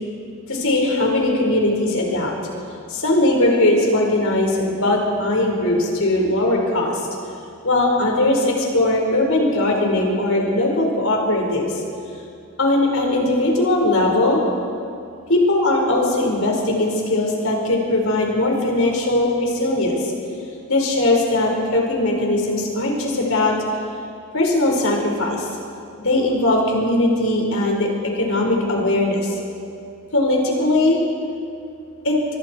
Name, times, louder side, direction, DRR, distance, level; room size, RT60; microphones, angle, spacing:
voice 1, 0.5-2.5 2.9-7.0 7.6-11.8 12.6-14.4 15.3-20.1 20.7-23.6 24.3-25.5 26.0-29.4 30.1-31.0 32.0-32.2, left 1 dB, 70° left, 0 dB, 4.8 m, -19 dB
25.0 x 23.0 x 4.6 m, 2.5 s
head